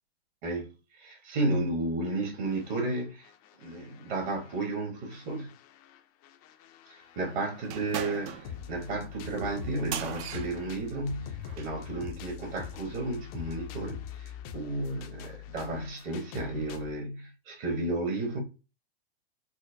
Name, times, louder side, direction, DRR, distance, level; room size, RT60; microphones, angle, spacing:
voice 1, 0.4-0.7 1.0-3.3 3.6-5.5 6.9-18.4, right 2 dB, 50° right, 1.4 m, -33 dB
sound 1, 2.5-4.7 5.1-16.9, left 10 dB, 35° left, 0.4 m, -44 dB
sound 2, 7.6-11.8, right 8 dB, 30° right, 0.4 m, -40 dB
4.4 x 2.1 x 2.6 m
hypercardioid pair, 125°, 32 cm